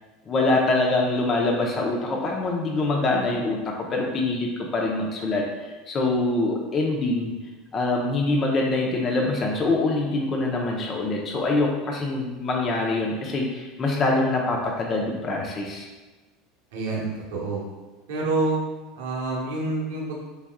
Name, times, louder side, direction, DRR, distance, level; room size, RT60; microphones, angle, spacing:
voice 1, 0.3-7.3 7.7-15.9, left 2 dB, 35° left, -1 dB, 0.7 m, -24 dB
voice 2, 16.7-17.6 18.1-18.6 19.0-20.2, right 3 dB, 80° right, -4 dB, 1.0 m, -27 dB
4.1 x 3.5 x 2.3 m, 1.3 s
hypercardioid pair, 95°, 0 cm